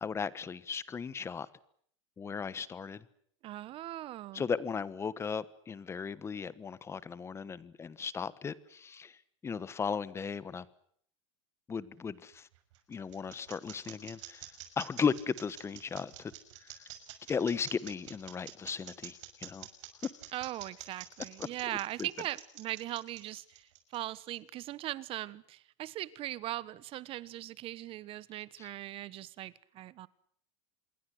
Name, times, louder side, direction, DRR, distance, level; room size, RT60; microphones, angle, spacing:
voice 1, 0.0-1.5 2.2-3.0 4.3-9.2 9.4-10.6 11.7-12.5 12.9-14.5 14.8-16.3 16.6-16.8 17.3-19.7 20.0-20.1 21.4-21.5 22.0-22.1 28.6-28.7, left 6 dB, 15° left, 18 dB, 1.2 m, -36 dB
voice 2, 3.4-4.4 20.3-30.1, right 14 dB, 35° right, 19 dB, 1.3 m, -40 dB
sound 1, 12.3-24.4, right 14 dB, 70° right, 6.2 m, -47 dB
27.0 x 22.0 x 7.9 m, 0.64 s
supercardioid pair, 145°, 16 cm